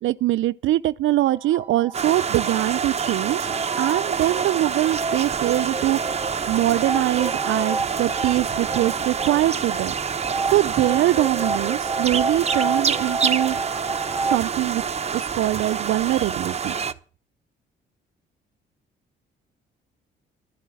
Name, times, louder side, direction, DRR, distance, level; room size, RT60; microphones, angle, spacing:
voice 1, 0.0-3.5 3.8-9.9 10.5-13.6 14.3-14.8 15.1-16.8, right 15 dB, 80° right, 0.6 m, -23 dB
sound 1, 1.3-2.9 3.2-14.4, right 3 dB, 10° right, 3.6 m, -31 dB
sound 2, 1.9-16.9, right 6 dB, 30° right, 0.9 m, -27 dB
13.0 x 9.9 x 7.7 m
cardioid pair, 90°, 20 cm